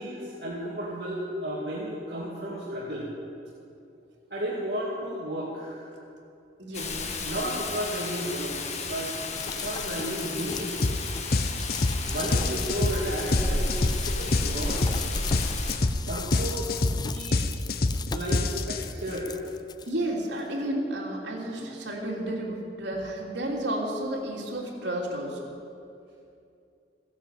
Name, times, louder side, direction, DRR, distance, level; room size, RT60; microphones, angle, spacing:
voice 1, 0.0-3.1 4.3-6.0 7.2-9.1 9.4-10.8 12.0-15.0 16.1-16.8 17.0-17.6 18.1-19.3, right 1 dB, 60° right, -6 dB, 2.5 m, -33 dB
voice 2, 6.6-7.0 19.9-25.4, right 1 dB, 75° right, -2 dB, 3.2 m, -32 dB
Rain, 6.7-15.8, left 3 dB, 40° left, 1.5 m, -33 dB
sound 1, 9.3-19.9 20.4-20.5, left 6 dB, 25° left, 0.3 m, -39 dB
sound 2, 10.8-11.0 11.3-19.1, left 2 dB, 55° left, 0.7 m, -26 dB
16.5 x 10.0 x 8.3 m, 2.6 s
head